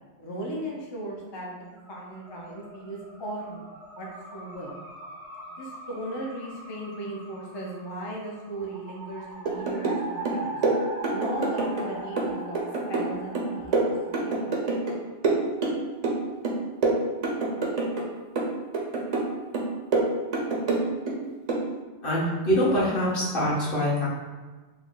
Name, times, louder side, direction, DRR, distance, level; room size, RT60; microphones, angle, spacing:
voice 1, 0.2-3.6 4.0-4.1 4.3-4.7 5.5-10.6 11.1-12.6 12.9-14.4, right 1 dB, 40° left, -2 dB, 0.4 m, -37 dB
sound 1, 1.5-14.7, right 1 dB, 85° right, 0.9 m, -41 dB
sound 2, 9.5-10.0 10.3-11.9 12.2-15.0 15.2-16.2 16.4-18.1 18.4-19.3 19.5-21.2 21.5-21.7, right 3 dB, 45° right, 0.5 m, -26 dB
voice 2, 22.0-24.1, equal, 55° left, -7 dB, 1.2 m, -24 dB
3.3 x 2.1 x 3.7 m, 1.3 s
omnidirectional pair, 1.1 m